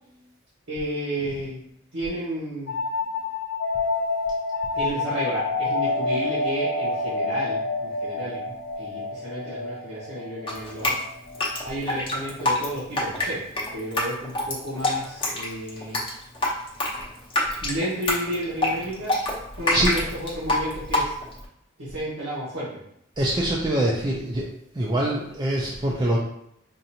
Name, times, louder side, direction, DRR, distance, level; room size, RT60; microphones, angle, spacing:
voice 1, 0.7-1.6 1.9-2.7 4.7-8.4 8.8-10.9 11.6-13.4 13.7-16.0 17.6-19.2 19.6-21.1 21.8-22.7, right 1 dB, 85° right, -10 dB, 1.5 m, -32 dB
sound 1, 2.7-12.0, left 3 dB, 60° left, 0.6 m, -28 dB
Drip, 10.5-21.4, left 1 dB, 25° left, 0.8 m, -26 dB
voice 2, 23.2-24.5 24.7-26.2, right 1 dB, 20° right, -4 dB, 0.5 m, -24 dB
5.2 x 2.6 x 2.8 m, 0.74 s
head